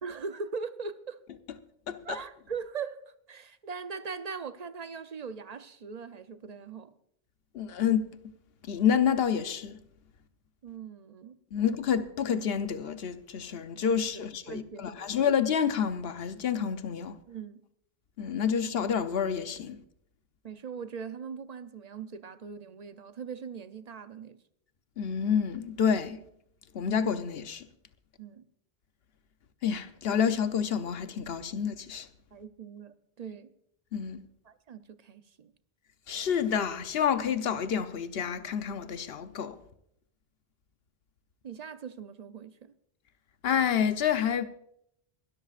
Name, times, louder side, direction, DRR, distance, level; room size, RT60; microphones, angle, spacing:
voice 1, 0.0-1.2 2.0-6.9 10.6-11.9 14.1-15.2 17.3-17.6 20.4-24.4 28.2-28.5 32.3-33.5 34.4-35.5 41.4-42.7, right 5 dB, 45° right, 0.7 m, -41 dB
voice 2, 7.5-8.1 8.7-9.8 11.5-17.2 18.2-19.8 25.0-26.2 26.7-27.6 29.6-32.1 33.9-34.3 36.1-39.6 43.4-44.4, left 7 dB, 70° left, 1.0 m, -28 dB
21.5 x 13.0 x 2.5 m
omnidirectional pair, 1.0 m